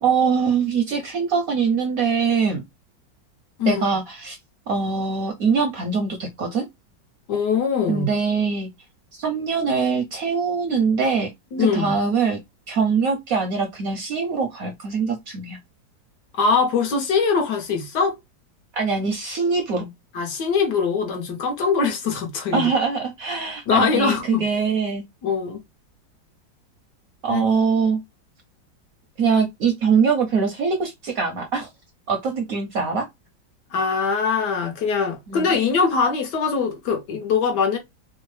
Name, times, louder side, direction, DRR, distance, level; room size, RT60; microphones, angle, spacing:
voice 1, 0.0-2.6 3.6-4.4 4.7-6.6 7.9-8.7 9.1-11.3 11.6-12.4 12.7-15.6 18.7-19.9 22.5-25.0 27.2-28.0 29.2-31.7 32.1-33.1 35.3-35.5, right 5 dB, 65° right, 0.9 m, -23 dB
voice 2, 7.3-8.1 11.5-11.9 16.3-18.1 20.1-22.7 23.7-24.4 25.2-25.6 27.3-27.5 33.7-37.8, left 5 dB, 65° left, 1.4 m, -22 dB
3.5 x 2.0 x 3.1 m
omnidirectional pair, 2.0 m